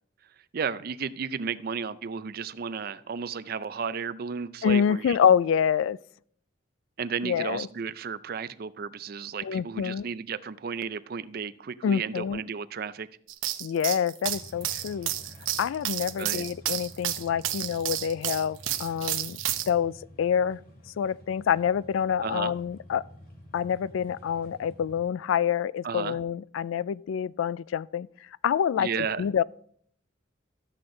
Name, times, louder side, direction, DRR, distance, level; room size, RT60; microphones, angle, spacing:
voice 1, 0.5-5.2 7.0-13.1 16.2-16.4 22.2-22.5 25.8-26.2 28.8-29.2, right 6 dB, 50° right, 0.4 m, -33 dB
voice 2, 4.6-6.0 7.2-7.7 9.4-10.0 11.8-12.4 13.6-15.1 15.6-19.4 19.7-20.6 21.0-23.0 23.5-28.1 28.4-29.4, left 8 dB, 85° left, 0.3 m, -27 dB
sound 1, 13.3-19.7, right 12 dB, 85° right, 0.8 m, -31 dB
sound 2, 14.2-25.1, left 1 dB, 50° left, 2.7 m, -50 dB
13.0 x 7.8 x 3.8 m
head